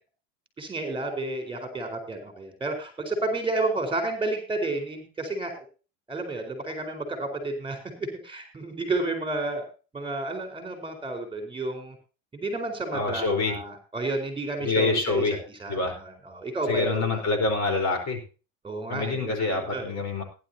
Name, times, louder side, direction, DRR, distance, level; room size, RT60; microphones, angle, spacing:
voice 1, 0.6-5.6 6.1-9.6 9.9-12.0 12.3-15.2 15.6-17.2 18.6-20.0, right 2 dB, 15° right, 6 dB, 4.5 m, -31 dB
voice 2, 12.9-13.5 14.6-15.4 15.7-16.0 16.7-18.2 18.9-20.2, left 3 dB, 40° left, 5 dB, 4.5 m, -26 dB
17.5 x 11.0 x 2.9 m, 0.34 s
supercardioid pair, 115°, 41 cm